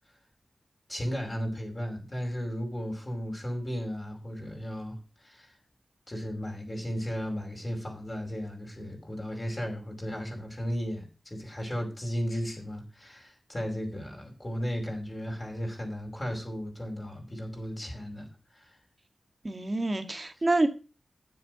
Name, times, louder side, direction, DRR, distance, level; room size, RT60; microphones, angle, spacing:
voice 1, 0.9-5.5 6.1-18.3 18.5-18.8, equal, 30° left, 5.2 m, -35 dB
voice 2, 19.4-20.7, right 2 dB, 40° right, 1.9 m, -27 dB
9.7 x 7.7 x 6.2 m
cardioid pair, 55°, 0 cm